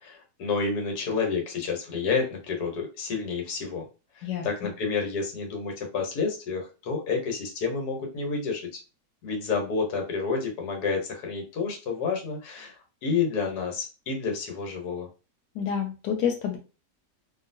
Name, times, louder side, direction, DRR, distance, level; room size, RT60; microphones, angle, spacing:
voice 1, 0.0-3.9 4.2-8.8 9.2-12.7 13.0-15.1, left 5 dB, 65° left, 2 dB, 1.4 m, -29 dB
voice 2, 15.6-16.6, left 8 dB, 85° left, 3 dB, 1.2 m, -28 dB
2.9 x 2.5 x 2.6 m, 0.31 s
omnidirectional pair, 1.8 m